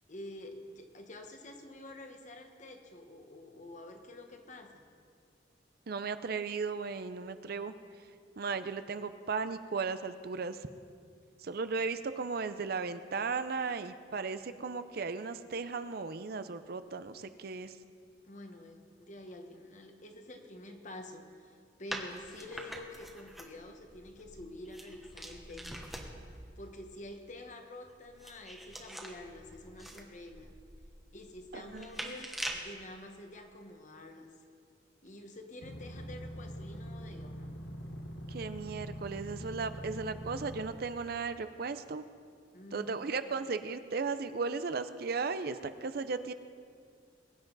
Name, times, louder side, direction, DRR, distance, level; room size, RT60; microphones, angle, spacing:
voice 1, 0.1-4.8 18.2-25.8 26.6-30.5 31.1-34.3 35.0-37.5 42.5-43.2, left 1 dB, 40° left, 4 dB, 1.2 m, -48 dB
voice 2, 5.9-7.7 8.4-10.6 11.4-17.7 31.5-32.1 38.3-42.0 42.7-46.3, right 4 dB, 55° right, 11 dB, 0.5 m, -36 dB
sound 1, 21.9-26.4 27.9-32.7, right 1 dB, ahead, 1.1 m, -44 dB
sound 2, 35.6-40.6, equal, 80° left, 1.2 m, -43 dB
22.0 x 9.5 x 4.0 m, 2.2 s
head